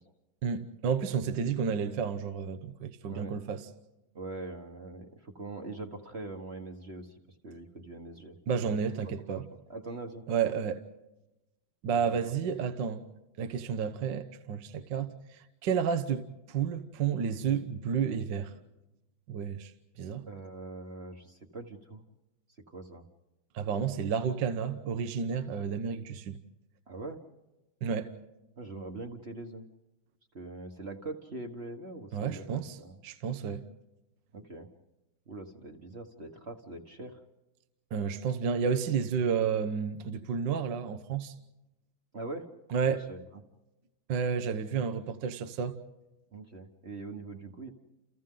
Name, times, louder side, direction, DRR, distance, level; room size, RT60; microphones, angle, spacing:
voice 1, 0.4-3.7 8.5-9.4 10.3-10.8 11.8-13.0 13.4-18.5 19.3-19.7 20.0-20.2 23.6-26.4 27.8-28.1 32.1-32.8 33.0-33.6 37.9-41.3 42.7-43.0 44.1-45.8, right 6 dB, 70° right, 1.6 m, -31 dB
voice 2, 4.1-7.2 7.4-8.4 8.6-10.2 12.1-12.3 20.2-22.0 22.7-23.0 26.9-27.2 28.6-29.7 30.3-33.0 34.3-34.7 35.3-37.2 42.1-42.5 43.1-43.2 46.3-47.7, right 2 dB, 35° right, 1.5 m, -42 dB
29.5 x 29.5 x 3.8 m
omnidirectional pair, 2.1 m